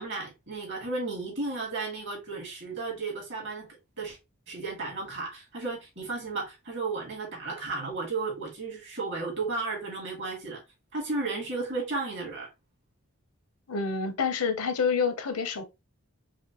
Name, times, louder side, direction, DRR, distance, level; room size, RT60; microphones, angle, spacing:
voice 1, 0.0-3.7 4.0-4.2 4.5-10.6 10.9-12.5, right 3 dB, 50° right, 2.0 m, -34 dB
voice 2, 13.7-15.6, left 5 dB, 80° left, 0.7 m, -28 dB
4.9 x 2.2 x 2.8 m
head